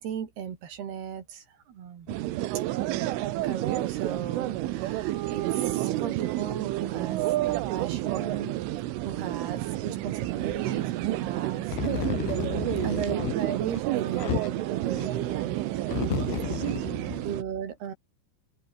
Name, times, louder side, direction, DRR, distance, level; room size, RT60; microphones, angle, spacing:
voice 1, 0.0-2.1 3.4-8.5 9.0-11.7 12.0-12.3 12.8-16.1 17.2-17.9, right 8 dB, 55° right, 4.3 m, -36 dB
sound 1, 2.1-17.4, right 16 dB, 80° right, 3.7 m, -30 dB
voice 2, 11.8-13.3 14.2-14.4 15.9-17.1, left 18 dB, 80° left, 2.7 m, -32 dB
omnidirectional pair, 5.9 m